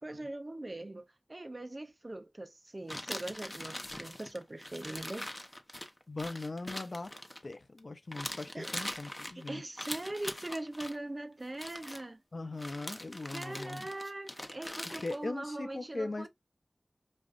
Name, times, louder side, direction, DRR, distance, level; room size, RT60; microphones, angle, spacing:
voice 1, 0.0-5.3 8.5-8.7 9.3-12.2 13.3-16.3, right 1 dB, 40° right, 0.5 m, -41 dB
sound 1, 2.9-7.8 8.1-11.0 11.5-12.0 12.6-15.2, left 1 dB, 25° left, 0.9 m, -42 dB
voice 2, 6.1-7.1 7.4-9.6 12.3-13.9 14.9-16.3, left 2 dB, 70° left, 0.6 m, -40 dB
5.2 x 2.4 x 2.4 m
wide cardioid pair, 40°, 0 cm